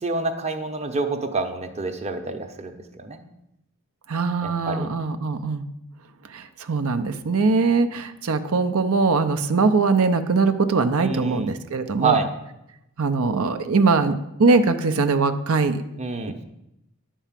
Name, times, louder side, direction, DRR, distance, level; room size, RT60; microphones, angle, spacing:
voice 1, 0.0-3.2 4.4-4.9 11.0-11.5 12.0-12.3 16.0-16.3, right 4 dB, 30° right, 6 dB, 0.9 m, -27 dB
voice 2, 4.1-5.6 6.3-12.2 13.0-14.1 14.4-15.8, right 4 dB, 70° right, 9 dB, 0.7 m, -21 dB
10.0 x 4.6 x 7.4 m, 0.86 s
head